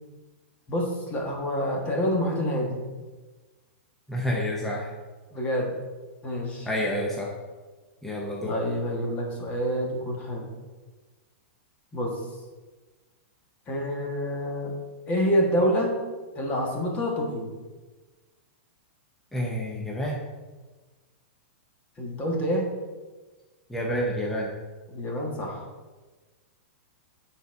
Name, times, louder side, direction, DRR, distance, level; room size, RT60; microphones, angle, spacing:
voice 1, 0.7-2.9 5.3-5.7 6.2-6.7 8.4-10.5 11.9-12.1 13.7-14.7 15.1-15.9 16.3-17.5 22.0-22.7 24.9-25.6, equal, 20° left, 0 dB, 1.3 m, -27 dB
voice 2, 4.1-4.9 6.7-7.3 8.0-8.5 19.3-20.2 23.7-24.5, equal, 5° left, -3 dB, 0.7 m, -29 dB
7.1 x 4.1 x 5.2 m, 1.3 s
hypercardioid pair, 155°, 7 cm